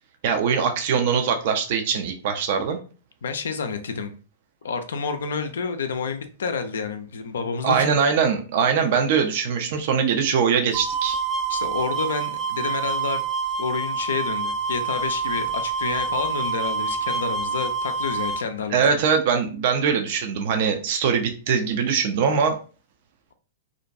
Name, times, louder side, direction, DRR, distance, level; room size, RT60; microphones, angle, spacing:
voice 1, 0.2-2.8 7.6-11.2 18.7-22.6, right 6 dB, 55° right, 5 dB, 0.4 m, -22 dB
voice 2, 3.2-4.2 4.6-8.0 11.5-13.2 13.6-19.0, left 5 dB, 70° left, 8 dB, 0.3 m, -29 dB
sound 1, 10.7-18.4, right 5 dB, 10° right, 0.6 m, -27 dB
2.5 x 2.1 x 2.5 m, 0.37 s
figure-of-eight pair, 105°, 0 cm